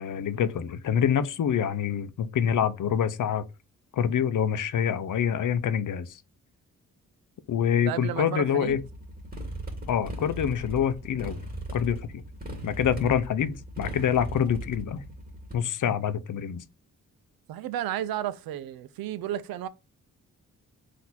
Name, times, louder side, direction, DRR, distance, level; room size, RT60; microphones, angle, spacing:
voice 1, 0.0-3.4 3.9-6.2 7.5-8.8 9.9-11.4 11.7-12.2 12.6-15.0 15.5-16.6, left 8 dB, 60° left, 0.6 m, -26 dB
voice 2, 7.9-8.8 13.0-13.1 17.5-19.7, right 11 dB, 75° right, 0.5 m, -32 dB
Motorcycle, 8.7-15.5, right 1 dB, 25° right, 2.0 m, -38 dB
3.9 x 2.7 x 4.1 m
supercardioid pair, 40°, 36 cm